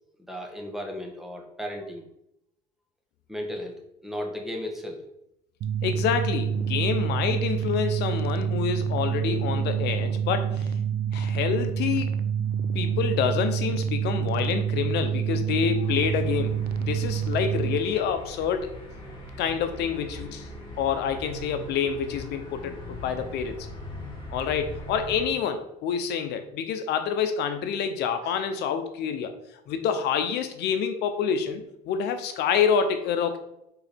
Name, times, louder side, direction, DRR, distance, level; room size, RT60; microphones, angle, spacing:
voice 1, 0.3-2.0 3.3-3.8 4.0-5.0, equal, ahead, 1 dB, 1.3 m, -35 dB
sound 1, 5.6-17.8, right 8 dB, 65° right, 0.5 m, -27 dB
voice 2, 5.8-10.7 11.1-12.3 12.7-18.7 19.4-20.5 20.8-23.6 24.3-29.3 29.7-33.4, left 7 dB, 80° left, 8 dB, 0.8 m, -27 dB
sound 2, 15.8-25.3, left 1 dB, 30° left, 2.2 m, -41 dB
4.7 x 4.0 x 5.1 m, 0.80 s
cardioid pair, 110°, 17 cm